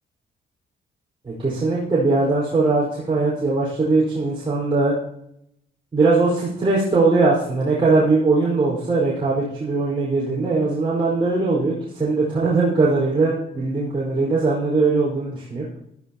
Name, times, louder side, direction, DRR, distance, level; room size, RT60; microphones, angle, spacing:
voice 1, 1.2-4.9 5.9-15.6, right 3 dB, 25° right, -6 dB, 5.0 m, -20 dB
15.0 x 12.5 x 3.0 m, 0.76 s
cardioid pair, 90°, 20 cm